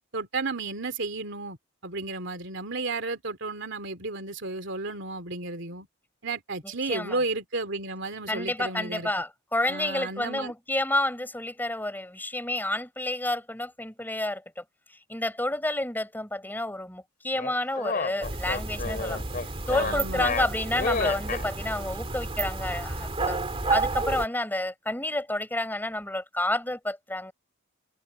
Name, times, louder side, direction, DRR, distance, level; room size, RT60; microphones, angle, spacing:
voice 1, 0.1-1.6 1.8-5.9 6.2-9.1 9.7-10.5 19.7-20.3, right 3 dB, 60° right, 2.9 m, -33 dB
voice 2, 6.9-7.2 8.3-14.6 15.1-19.2 19.7-23.4 23.7-27.3, left 1 dB, 10° left, 7.5 m, -30 dB
sound 1, 17.4-21.4, left 4 dB, 45° left, 2.9 m, -30 dB
sound 2, 18.2-24.3, right 3 dB, 30° right, 2.5 m, -31 dB
head